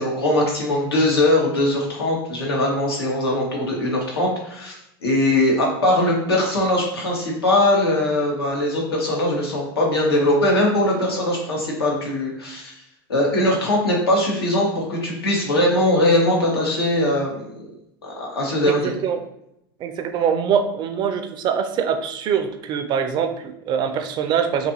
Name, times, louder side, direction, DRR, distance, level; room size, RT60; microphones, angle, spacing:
voice 1, 0.0-4.7 5.0-12.7 13.1-17.7 18.0-18.9, left 1 dB, 90° left, -2 dB, 0.8 m, -21 dB
voice 2, 18.6-19.2 19.8-24.7, right 7 dB, 35° right, 7 dB, 0.3 m, -23 dB
2.6 x 2.4 x 2.6 m, 0.81 s
hypercardioid pair, 95°, 12 cm